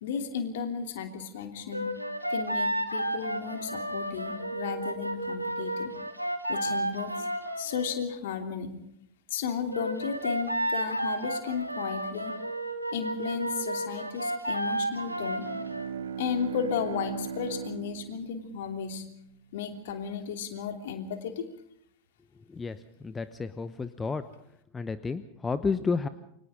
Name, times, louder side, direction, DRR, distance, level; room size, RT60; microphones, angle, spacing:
voice 1, 0.0-1.9 2.3-5.9 6.5-8.7 9.3-12.3 12.9-15.5 16.2-19.0 19.5-21.4, left 7 dB, 55° left, 5 dB, 3.1 m, -34 dB
sound 1, 1.7-7.9 9.7-15.9, right 1 dB, 90° right, 1.9 m, -32 dB
Bowed string instrument, 14.8-19.4, right 7 dB, 70° right, 1.5 m, -39 dB
voice 2, 22.5-24.2 24.7-26.1, left 4 dB, 15° left, 13 dB, 0.9 m, -31 dB
28.5 x 24.5 x 3.8 m, 0.75 s
figure-of-eight pair, 90°, 0 cm